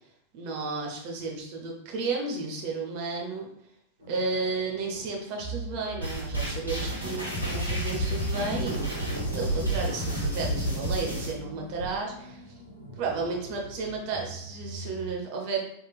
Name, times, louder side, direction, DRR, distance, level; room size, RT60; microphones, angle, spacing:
voice 1, 0.3-3.5 4.1-12.4 13.0-15.7, right 4 dB, 45° right, 1 dB, 0.8 m, -33 dB
sound 1, 4.0-15.1, right 2 dB, 85° right, 1.1 m, -43 dB
sound 2, 6.0-11.3, right 1 dB, 90° left, 1.1 m, -30 dB
3.6 x 3.2 x 2.3 m, 0.72 s
figure-of-eight pair, 90°, 0 cm